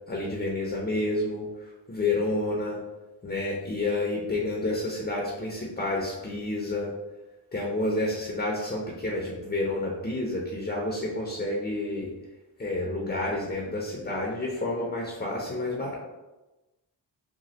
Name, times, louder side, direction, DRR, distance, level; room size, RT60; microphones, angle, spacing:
voice 1, 0.1-2.8 3.2-6.9 7.5-12.1 12.6-15.9, left 2 dB, 20° left, -2 dB, 0.6 m, -29 dB
3.1 x 2.3 x 2.8 m, 1.1 s
cardioid pair, 60°, 47 cm